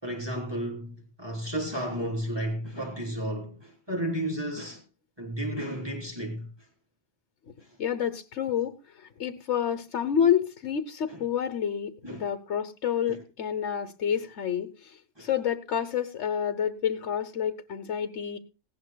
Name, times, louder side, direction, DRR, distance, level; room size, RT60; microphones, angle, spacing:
voice 1, 0.0-4.8 5.2-6.4 12.0-12.2 13.1-13.2 15.2-15.3, right 1 dB, 20° right, 3.9 m, -33 dB
voice 2, 7.8-18.4, left 8 dB, 90° left, 1.2 m, -29 dB
18.5 x 16.5 x 2.2 m
omnidirectional pair, 1.1 m